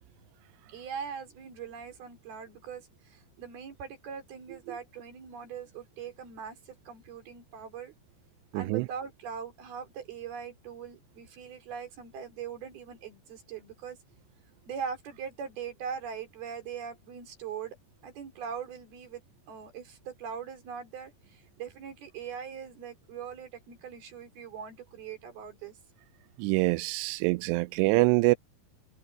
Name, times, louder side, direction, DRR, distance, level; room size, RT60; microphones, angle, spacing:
voice 1, 0.7-7.9 8.5-14.0 14.7-17.8 18.0-19.2 19.5-25.8, right 7 dB, 60° right, 5.9 m, -41 dB
voice 2, 8.5-8.9 26.4-28.4, right 23 dB, 85° right, 2.6 m, -25 dB
omnidirectional pair, 5.0 m